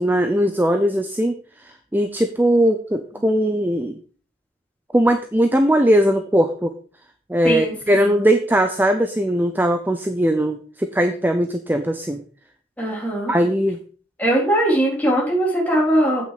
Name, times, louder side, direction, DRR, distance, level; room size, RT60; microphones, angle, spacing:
voice 1, 0.0-4.0 4.9-6.7 7.3-12.2 13.3-13.8, equal, 10° right, 7 dB, 0.6 m, -19 dB
voice 2, 7.4-8.1 12.8-13.3 14.2-16.2, right 1 dB, 10° left, -4 dB, 3.8 m, -20 dB
8.2 x 6.2 x 5.0 m, 0.42 s
head